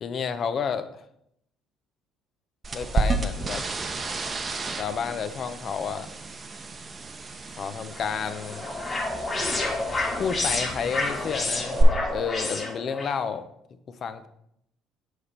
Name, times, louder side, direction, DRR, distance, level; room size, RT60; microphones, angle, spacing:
voice 1, 0.0-0.9 2.7-3.6 4.7-6.1 7.5-8.7 10.2-13.4 13.9-14.3, left 6 dB, 50° left, 11 dB, 0.5 m, -30 dB
sound 1, 2.6-11.8, right 3 dB, 35° right, 0.7 m, -32 dB
sound 2, 7.9-13.1, left 2 dB, 35° left, 1.8 m, -29 dB
5.1 x 4.7 x 4.3 m, 0.75 s
hypercardioid pair, 65°, 0 cm